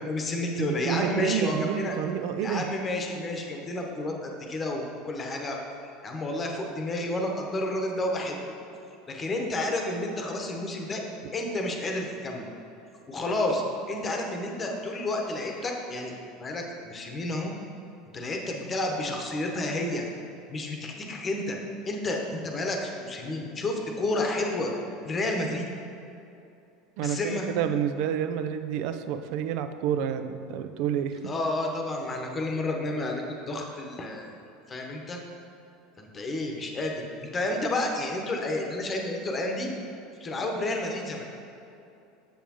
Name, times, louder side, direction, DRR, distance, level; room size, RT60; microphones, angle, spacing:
voice 1, 0.0-2.0 2.4-5.6 6.0-8.4 9.1-11.0 11.3-12.5 13.1-16.1 16.4-17.5 18.1-20.1 20.5-21.6 21.9-24.7 25.0-25.7 27.0-27.5 31.2-34.3 34.7-35.2 36.0-39.7 40.2-41.2, left 2 dB, 30° left, 2 dB, 1.0 m, -30 dB
voice 2, 0.6-2.7 27.0-31.3, right 9 dB, 55° right, 9 dB, 0.4 m, -29 dB
7.2 x 7.0 x 2.9 m, 2.8 s
figure-of-eight pair, 75°, 0 cm